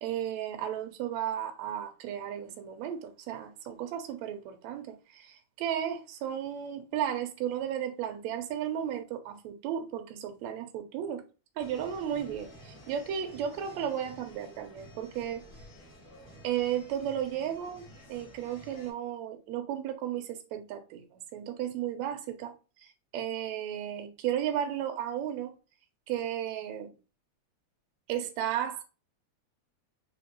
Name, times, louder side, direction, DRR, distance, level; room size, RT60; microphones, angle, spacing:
voice 1, 0.0-11.2 11.6-15.4 16.4-22.5 23.1-25.5 26.1-26.9 28.1-28.8, right 10 dB, 75° right, 1.8 m, -34 dB
sound 1, 11.6-18.9, equal, 40° left, 1.7 m, -52 dB
5.0 x 3.1 x 3.0 m
omnidirectional pair, 3.6 m